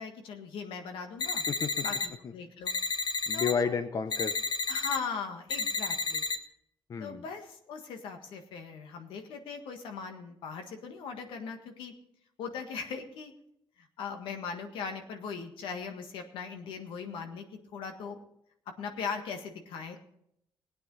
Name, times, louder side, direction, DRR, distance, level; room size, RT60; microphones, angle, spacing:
voice 1, 0.0-1.4 1.8-2.7 3.3-3.8 4.7-6.3 7.0-11.9 12.4-13.3 13.8-17.4 17.7-18.2 18.7-20.0, left 5 dB, 85° left, 5 dB, 1.6 m, -39 dB
sound 1, 1.2-2.1 2.7-3.5 4.1-5.0 5.5-6.4, left 4 dB, 65° left, 1.1 m, -31 dB
voice 2, 3.3-4.3 6.9-7.2, left 6 dB, 45° left, 10 dB, 0.7 m, -31 dB
17.5 x 9.3 x 4.0 m, 0.74 s
cardioid pair, 95°, 8 cm